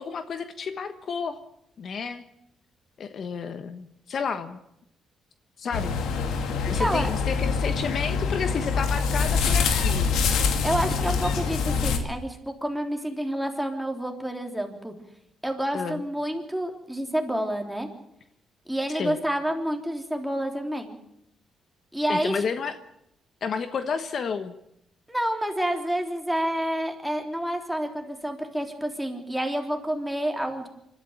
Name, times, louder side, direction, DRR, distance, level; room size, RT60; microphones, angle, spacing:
voice 1, 0.0-1.4 1.8-2.3 3.0-4.6 5.6-6.0 6.7-10.1 15.7-16.0 19.0-19.2 22.1-22.7 23.4-24.5, left 6 dB, 55° left, 9 dB, 1.3 m, -31 dB
sound 1, 5.7-12.0, left 5 dB, 85° left, 2.4 m, -25 dB
voice 2, 6.8-7.1 10.6-14.9 15.4-17.9 18.7-20.9 21.9-22.3 25.1-30.7, right 1 dB, ahead, 3 dB, 3.5 m, -28 dB
25.0 x 13.0 x 8.6 m, 0.78 s
cardioid pair, 90°, 0 cm